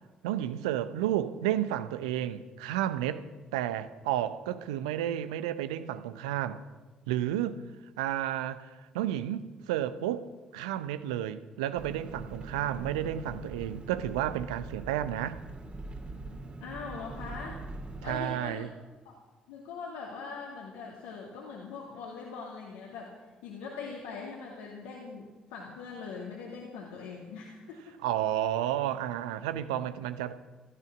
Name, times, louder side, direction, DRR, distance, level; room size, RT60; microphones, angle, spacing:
voice 1, 0.2-3.2 3.5-6.6 7.1-7.6 8.0-15.4 18.0-18.7 28.0-30.3, right 12 dB, 75° right, 0.8 m, -31 dB
Engine, 11.7-18.2, right 2 dB, 30° right, 2.7 m, -43 dB
voice 2, 16.6-17.6 18.0-18.7 19.5-23.2 23.4-27.9, left 5 dB, 70° left, 2.3 m, -41 dB
17.0 x 13.5 x 6.0 m
figure-of-eight pair, 45°, 4 cm